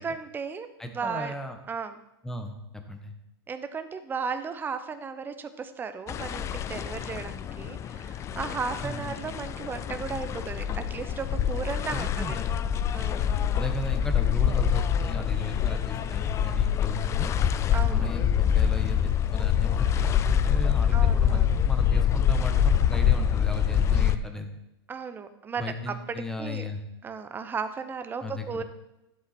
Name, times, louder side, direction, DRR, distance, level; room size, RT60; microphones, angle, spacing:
voice 1, 0.0-1.3 1.7-2.0 3.5-12.4 12.9-13.3 17.7-18.1 20.9-21.5 24.9-26.7 27.0-28.6, right 5 dB, 15° right, 10 dB, 0.8 m, -35 dB
voice 2, 0.8-1.6 2.2-3.1 8.8-9.2 11.9-12.6 13.5-17.3 17.9-24.5 25.6-26.8 28.2-28.6, left 1 dB, 5° left, 5 dB, 1.3 m, -36 dB
sound 1, 6.1-24.2, left 9 dB, 20° left, 0.4 m, -25 dB
12.5 x 8.1 x 4.3 m, 0.90 s
hypercardioid pair, 130°, 14 cm